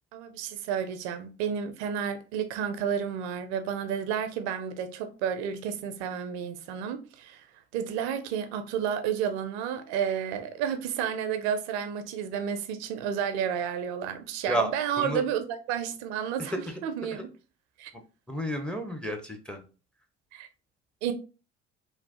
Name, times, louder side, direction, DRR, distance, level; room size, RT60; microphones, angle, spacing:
voice 1, 0.1-7.5 7.7-16.5 16.8-17.3 17.8-17.9 20.3-20.5 21.0-21.1, right 8 dB, 70° right, 0.5 m, -31 dB
voice 2, 14.5-15.2 16.4-16.6 18.3-19.6, right 1 dB, 5° left, 0.6 m, -31 dB
3.0 x 2.0 x 2.8 m
hypercardioid pair, 55°, 34 cm